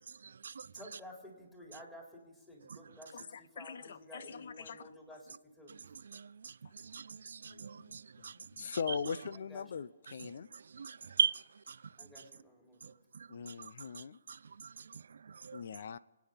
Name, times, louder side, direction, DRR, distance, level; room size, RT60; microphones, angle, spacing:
voice 1, 0.2-0.7 6.1-8.4 8.7-9.0 10.2-11.8 12.8-15.6, right 6 dB, 70° right, 0.5 m, -40 dB
voice 2, 0.7-5.8 9.3-9.8 12.0-13.0, left 1 dB, 10° left, 3.9 m, -53 dB
voice 3, 3.6-4.8 7.5-8.3 8.5-10.5 13.3-14.2 15.5-16.0, left 6 dB, 60° left, 0.7 m, -41 dB
27.0 x 9.4 x 5.3 m
hypercardioid pair, 155°, 0 cm